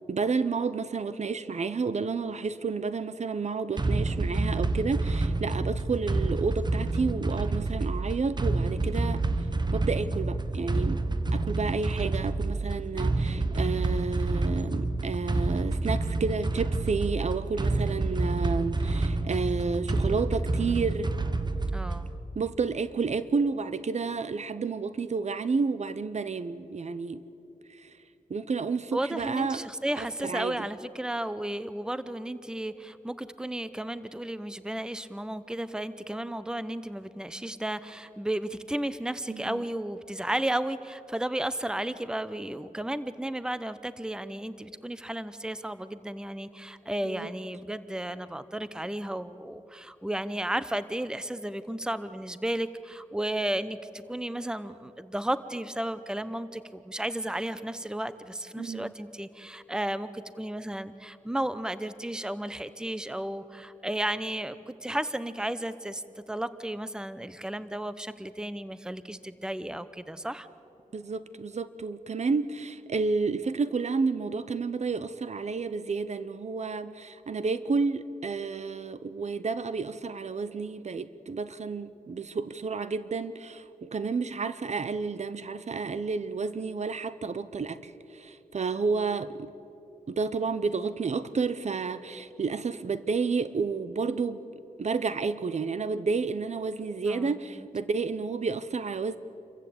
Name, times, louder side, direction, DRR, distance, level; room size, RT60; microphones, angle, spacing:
voice 1, 0.1-9.2 9.7-11.0 11.3-21.2 22.3-27.2 27.7-28.0 28.3-29.7 30.0-30.7 39.3-39.6 47.0-47.3 58.6-58.9 70.9-89.5 90.1-94.4 94.8-99.2, right 4 dB, 55° right, 14 dB, 0.8 m, -31 dB
sound 1, 3.8-22.2, right 2 dB, 35° right, 1.1 m, -28 dB
voice 2, 21.7-22.1 28.9-70.5 97.0-97.7, right 1 dB, 5° right, 14 dB, 0.8 m, -33 dB
27.5 x 15.0 x 8.6 m, 2.9 s
wide cardioid pair, 80°, 14 cm